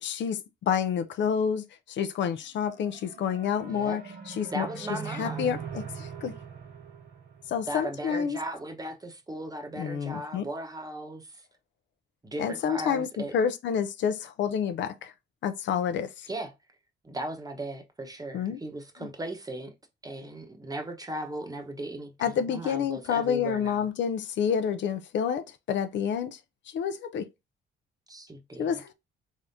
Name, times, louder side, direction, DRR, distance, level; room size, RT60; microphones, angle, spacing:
voice 1, 0.0-4.0 4.3-4.7 5.2-6.3 7.5-8.4 9.8-10.4 12.4-13.1 13.3-15.1 15.4-16.3 18.3-18.6 22.2-26.4 26.7-27.2 28.6-28.9, left 7 dB, 65° left, 0.5 m, -29 dB
sound 1, 2.5-8.0, right 7 dB, 85° right, 1.7 m, -41 dB
voice 2, 3.7-4.0 4.5-5.6 7.7-11.4 12.2-13.3 16.3-16.5 17.0-19.7 20.0-23.9 28.1-28.8, right 1 dB, 20° right, 0.9 m, -37 dB
3.6 x 3.5 x 2.6 m
cardioid pair, 90°, 20 cm